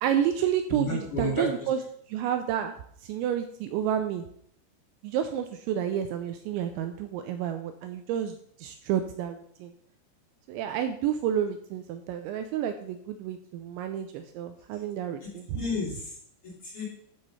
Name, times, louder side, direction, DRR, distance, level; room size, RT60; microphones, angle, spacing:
voice 1, 0.0-1.8 2.1-2.7 3.0-4.2 5.0-9.7 10.5-15.5, right 9 dB, 80° right, 8 dB, 2.7 m, -30 dB
voice 2, 0.7-1.7 15.5-16.1 16.6-16.8, left 1 dB, 30° left, -6 dB, 3.5 m, -31 dB
13.0 x 5.1 x 5.5 m, 0.68 s
omnidirectional pair, 5.6 m